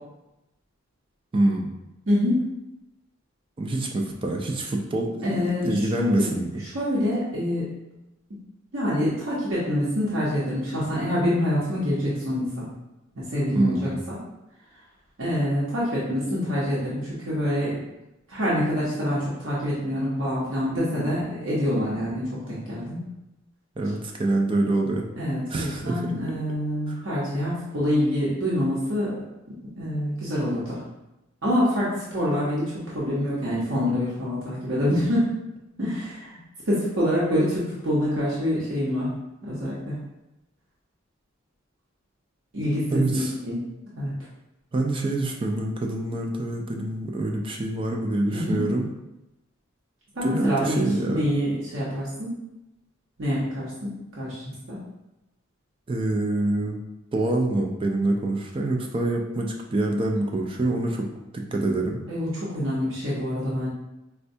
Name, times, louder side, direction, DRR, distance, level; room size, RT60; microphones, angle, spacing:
voice 1, 1.3-1.7 3.6-6.6 13.5-14.0 23.8-25.0 25.5-26.1 26.9-27.0 42.9-43.3 44.7-48.9 50.2-51.2 55.9-56.8 57.1-61.1 61.3-62.0, right 2 dB, 25° right, 1 dB, 0.3 m, -26 dB
voice 2, 2.1-2.5 5.2-7.7 8.7-12.7 13.2-14.2 15.2-17.8 18.3-23.1 25.2-29.2 29.8-30.8 31.4-35.3 35.8-36.4 36.7-39.1 39.4-40.0 42.5-43.7 44.0-44.1 48.3-48.6 50.1-52.3 53.2-54.8 62.1-63.7, equal, 70° right, -8 dB, 0.8 m, -26 dB
4.3 x 2.2 x 2.6 m, 0.95 s
head